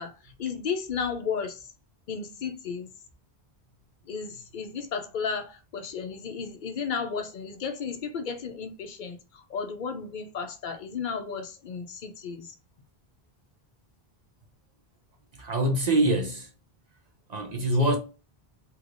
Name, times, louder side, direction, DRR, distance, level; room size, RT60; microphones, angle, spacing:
voice 1, 0.0-1.7 2.1-2.9 4.1-12.5 17.8-18.0, left 6 dB, 55° left, 0.7 m, -34 dB
voice 2, 15.4-16.5 17.3-18.0, right 1 dB, 50° right, 0.6 m, -24 dB
3.3 x 2.9 x 2.4 m
omnidirectional pair, 1.0 m